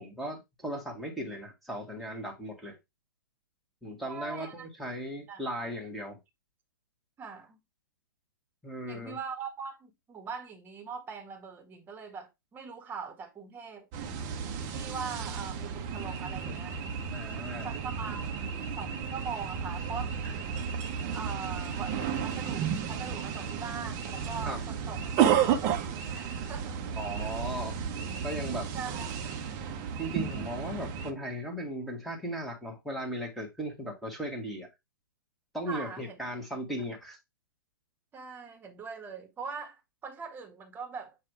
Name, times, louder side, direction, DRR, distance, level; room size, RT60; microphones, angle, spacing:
voice 1, 0.0-2.8 3.8-6.2 8.6-9.2 16.2-16.6 17.1-17.7 24.5-24.6 27.0-27.8 28.2-28.7 30.0-34.7 35.5-37.2, equal, ahead, 1.7 m, -37 dB
voice 2, 4.1-4.7 5.3-5.4 7.2-7.6 8.9-13.9 14.7-16.8 17.6-20.5 21.1-25.0 25.3-26.8 28.7-29.2 35.7-36.2 38.1-41.2, right 5 dB, 15° right, 1.5 m, -41 dB
sound 1, 13.9-31.1, right 8 dB, 30° right, 1.0 m, -32 dB
7.5 x 2.7 x 4.6 m
figure-of-eight pair, 115°, 11 cm